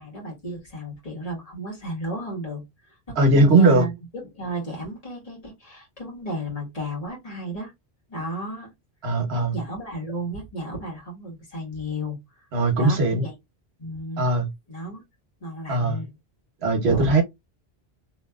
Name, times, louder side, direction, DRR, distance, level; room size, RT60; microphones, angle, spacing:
voice 1, 0.0-3.9 4.3-7.7 8.1-8.7 9.3-12.5 12.8-13.3 13.8-14.2 14.7-15.0 15.4-16.1 16.9-17.1, right 1 dB, 35° left, 1.5 m, -33 dB
voice 2, 3.2-3.8 9.0-9.6 12.5-13.3 14.2-14.5 15.7-16.0 16.6-17.2, right 2 dB, 85° right, 1.2 m, -19 dB
2.9 x 2.8 x 2.3 m
omnidirectional pair, 1.0 m